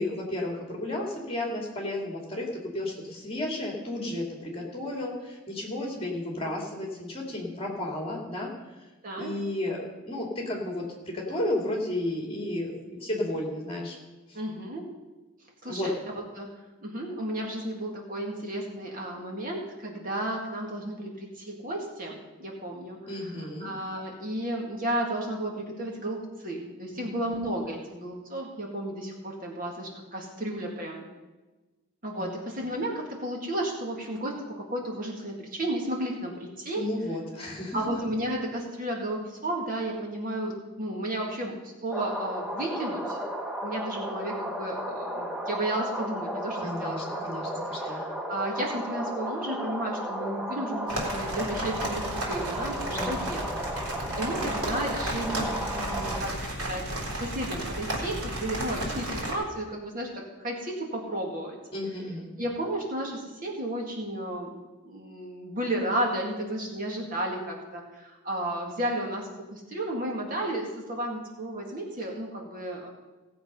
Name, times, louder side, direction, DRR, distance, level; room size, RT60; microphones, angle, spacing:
voice 1, 0.0-2.5 2.7-8.5 9.2-9.8 10.0-10.8 11.1-14.0 14.3-14.4 15.7-15.9 23.1-23.7 26.9-27.1 32.2-32.4 36.7-37.8 46.6-48.0 52.9-53.1 61.7-62.3, left 1 dB, 25° left, -1 dB, 2.6 m, -33 dB
voice 2, 14.3-14.8 15.6-16.5 16.8-23.3 23.6-31.1 32.0-36.9 37.7-43.2 43.6-47.4 47.8-56.4 56.7-56.9 57.2-61.6 62.4-64.6 64.8-72.9, right 1 dB, 40° right, -1 dB, 2.1 m, -33 dB
sound 1, 41.9-56.2, right 1 dB, 5° right, 1.0 m, -34 dB
sound 2, 50.9-59.3, right 1 dB, 85° right, 3.7 m, -33 dB
17.5 x 7.7 x 5.5 m, 1.2 s
head